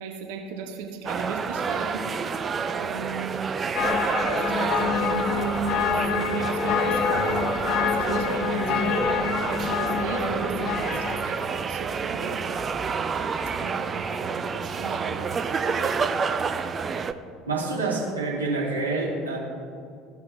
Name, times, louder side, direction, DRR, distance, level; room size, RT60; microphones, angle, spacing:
voice 1, 0.0-2.0 2.7-3.3 4.3-7.5 7.8-8.9 9.5-12.4 13.6-15.3 15.6-16.2, right 6 dB, 65° right, 3 dB, 0.9 m, -35 dB
sound 1, 1.1-17.1, right 5 dB, 30° right, 0.5 m, -28 dB
sound 2, 3.8-11.4, left 8 dB, 55° left, 0.4 m, -27 dB
voice 2, 17.5-19.4, right 3 dB, 85° right, -4 dB, 1.7 m, -27 dB
15.0 x 5.7 x 2.6 m, 2.3 s
figure-of-eight pair, 65°, 0 cm